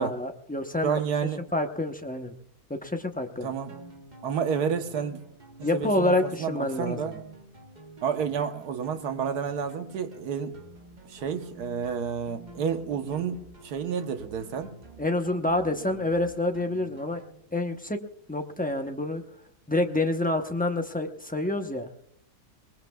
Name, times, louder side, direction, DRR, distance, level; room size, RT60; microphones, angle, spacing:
voice 1, 0.0-1.0 1.5-2.3 2.7-3.5 5.6-7.2 15.0-17.2 17.5-18.0 18.3-19.2 19.7-22.1, left 2 dB, 10° left, 0.5 m, -28 dB
voice 2, 0.8-1.4 3.4-3.8 4.2-5.2 5.6-7.2 8.0-10.6 11.1-14.7, right 7 dB, 75° right, 1.6 m, -30 dB
sound 1, 3.7-17.4, right 2 dB, 30° right, 1.3 m, -49 dB
23.0 x 20.0 x 2.3 m
omnidirectional pair, 1.7 m